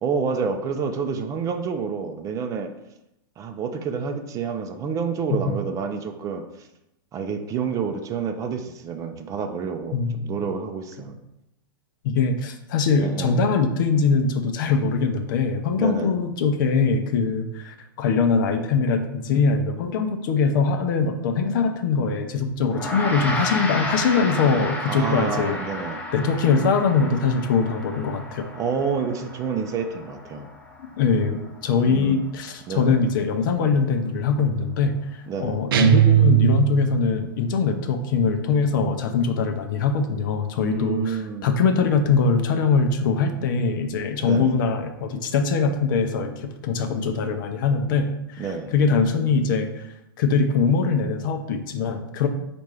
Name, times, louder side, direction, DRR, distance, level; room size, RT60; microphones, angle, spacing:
voice 1, 0.0-2.7 3.4-6.4 7.1-11.2 13.0-13.5 15.8-16.1 24.9-26.0 28.5-30.5 31.8-32.3 32.7-33.0 35.3-35.6 40.6-41.5 44.2-44.6 48.4-48.7, right 6 dB, 25° right, 5 dB, 0.5 m, -28 dB
voice 2, 9.9-10.2 12.0-25.6 26.1-28.5 31.0-49.9 50.2-52.3, left 5 dB, 60° left, 7 dB, 0.6 m, -22 dB
Gong, 22.7-32.3, left 1 dB, 15° left, 0.7 m, -33 dB
sound 1, 35.7-37.1, right 12 dB, 75° right, 0.5 m, -18 dB
4.3 x 2.6 x 4.8 m, 0.87 s
hypercardioid pair, 115°, 12 cm